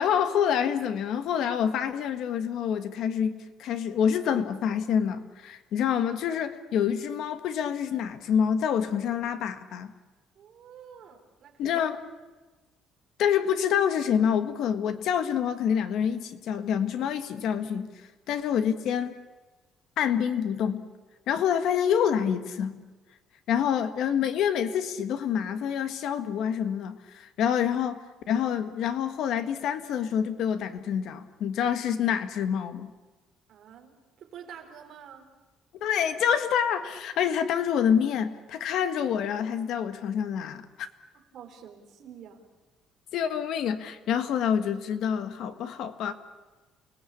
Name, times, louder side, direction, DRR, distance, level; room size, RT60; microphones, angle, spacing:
voice 1, 0.0-9.9 11.6-12.0 13.2-17.9 18.3-19.2 20.0-20.8 21.3-22.8 23.5-28.0 28.3-32.9 35.8-40.9 43.1-46.1, left 8 dB, 60° left, 10 dB, 1.6 m, -27 dB
voice 2, 10.4-11.8 33.5-35.3 41.1-42.4, right 8 dB, 45° right, 3 dB, 4.0 m, -48 dB
29.0 x 19.5 x 8.5 m, 1.2 s
cardioid pair, 180°, 0 cm